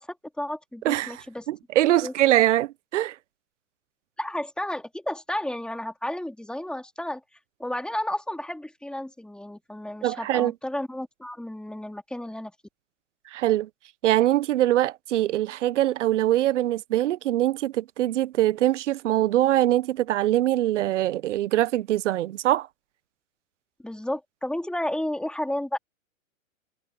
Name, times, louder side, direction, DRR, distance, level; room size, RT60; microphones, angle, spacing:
voice 1, 0.0-1.5 2.0-2.1 4.2-7.2 7.6-12.5 23.8-25.8, left 1 dB, ahead, 2.5 m, -32 dB
voice 2, 0.8-3.1 10.0-10.5 13.3-13.7 14.0-22.7, right 14 dB, 60° right, 1.3 m, -23 dB
hypercardioid pair, 115°, 41 cm